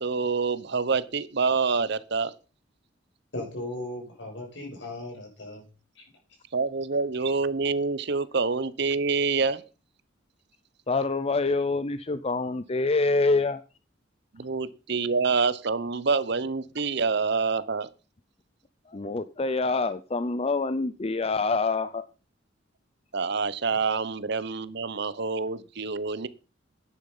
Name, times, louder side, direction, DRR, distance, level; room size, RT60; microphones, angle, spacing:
voice 1, 0.0-2.3 6.5-9.6 14.3-17.9 23.1-26.3, right 4 dB, 60° right, 0.9 m, -27 dB
voice 2, 3.3-5.6 5.9-6.0, left 1 dB, 70° left, 6.8 m, -37 dB
voice 3, 10.9-13.6 18.9-22.0, left 3 dB, 30° left, 0.6 m, -26 dB
10.5 x 10.0 x 5.6 m
head